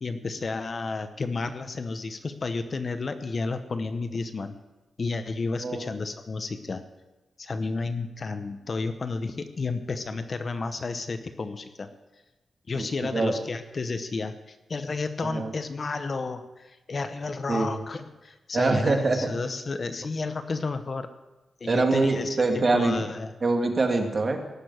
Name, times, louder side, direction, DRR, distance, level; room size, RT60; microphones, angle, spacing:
voice 1, 0.0-4.5 5.0-6.8 7.4-11.9 12.7-21.1 21.6-23.3, left 3 dB, 40° left, 9 dB, 0.9 m, -32 dB
voice 2, 18.5-19.3 21.6-23.1 23.4-24.4, right 3 dB, 35° right, 4 dB, 2.0 m, -24 dB
18.0 x 6.9 x 9.3 m, 1.1 s
wide cardioid pair, 145°, 0 cm